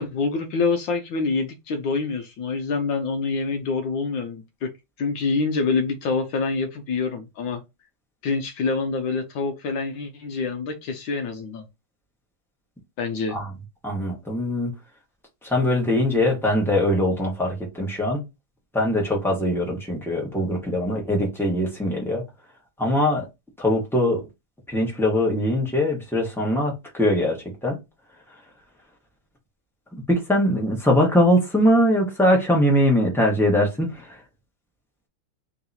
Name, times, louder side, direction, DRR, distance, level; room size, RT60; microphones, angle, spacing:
voice 1, 0.0-4.7 5.0-7.6 8.2-11.6 13.0-13.4, left 4 dB, 70° left, 1.4 m, -26 dB
voice 2, 13.8-14.7 15.4-18.2 18.7-22.2 22.8-23.2 23.6-24.2 24.7-27.8 30.1-34.2, left 1 dB, ahead, 1.0 m, -22 dB
3.7 x 3.0 x 4.0 m
omnidirectional pair, 2.4 m